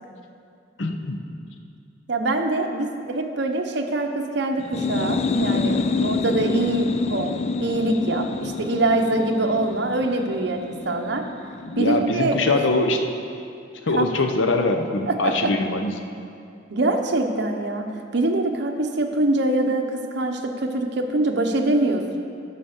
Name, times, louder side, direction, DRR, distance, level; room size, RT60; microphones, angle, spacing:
voice 1, 0.8-1.2 11.6-13.0 13.8-15.9, left 2 dB, 85° left, 5 dB, 0.8 m, -22 dB
voice 2, 2.1-11.3 11.8-12.6 13.9-14.1 15.1-15.5 16.7-17.9 18.1-22.2, right 2 dB, 65° right, 4 dB, 0.8 m, -24 dB
sound 1, 4.6-12.1, left 3 dB, 35° left, 0.4 m, -27 dB
9.1 x 5.8 x 6.6 m, 2.4 s
head